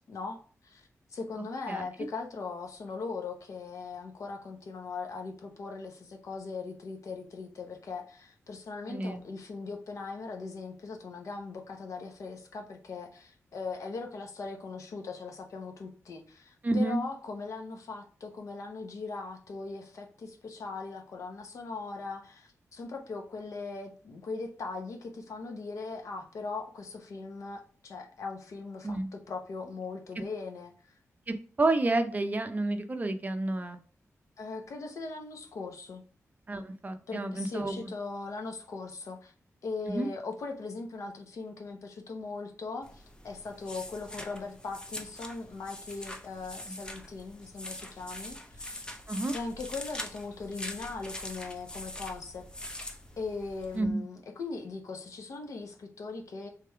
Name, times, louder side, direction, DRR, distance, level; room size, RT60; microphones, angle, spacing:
voice 1, 0.1-0.8 1.1-30.7 34.4-36.0 37.1-39.3 39.6-48.8 49.3-52.5 53.2-56.5, left 4 dB, 75° left, 3 dB, 0.9 m, -39 dB
voice 2, 1.7-2.1 8.9-9.2 16.6-17.0 28.8-29.1 31.3-33.8 36.5-37.9 39.9-40.1 46.7-46.8 49.1-49.3 53.7-54.0, right 2 dB, 30° right, 7 dB, 0.6 m, -30 dB
sound 1, 42.8-53.8, left 1 dB, 15° left, 0.7 m, -43 dB
3.3 x 3.3 x 4.6 m, 0.41 s
wide cardioid pair, 100°, 5 cm